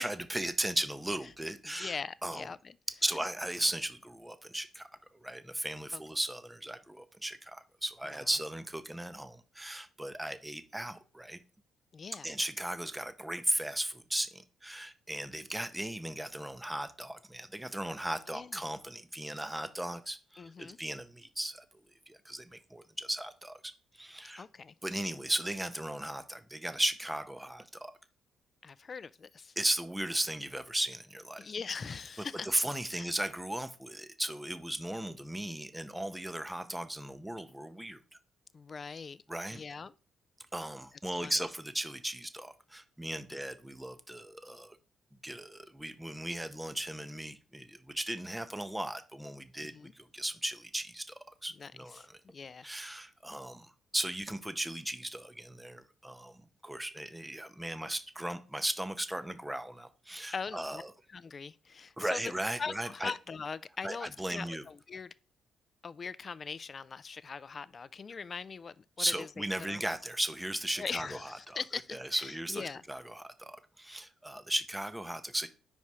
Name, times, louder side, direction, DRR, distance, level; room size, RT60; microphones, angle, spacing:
voice 1, 0.0-2.0 2.2-2.5 3.0-4.9 5.2-11.4 12.2-21.6 22.1-24.4 24.8-27.9 29.6-31.5 32.4-38.0 39.3-39.6 40.5-44.8 45.2-52.2 52.6-60.9 62.0-63.1 63.8-64.6 69.0-71.6 71.9-75.5, right 1 dB, 5° right, 0.6 m, -36 dB
voice 2, 1.7-2.8 5.9-6.0 8.1-8.3 11.9-12.3 18.3-18.6 20.4-20.8 24.4-24.7 28.6-29.5 31.4-32.5 33.0-33.1 38.5-39.2 39.5-39.9 41.2-41.3 49.6-49.9 51.6-52.7 60.3-60.8 61.1-62.2 62.6-65.1 65.8-69.3 69.7-70.0 70.8-72.8, left 5 dB, 40° left, 0.3 m, -41 dB
4.9 x 4.2 x 4.7 m
cardioid pair, 90°, 0 cm